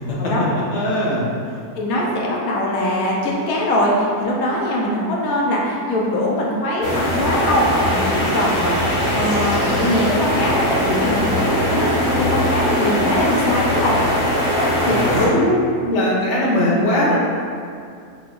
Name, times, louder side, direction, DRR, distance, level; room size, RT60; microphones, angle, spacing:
voice 1, 0.7-1.3 14.7-17.1, left 1 dB, 55° left, -6 dB, 1.2 m, -19 dB
voice 2, 1.7-13.9 14.8-15.3, left 1 dB, 85° left, -3 dB, 1.2 m, -22 dB
sound 1, 6.8-15.3, equal, 30° left, 0.7 m, -20 dB
5.9 x 2.5 x 3.0 m, 2.3 s
omnidirectional pair, 1.5 m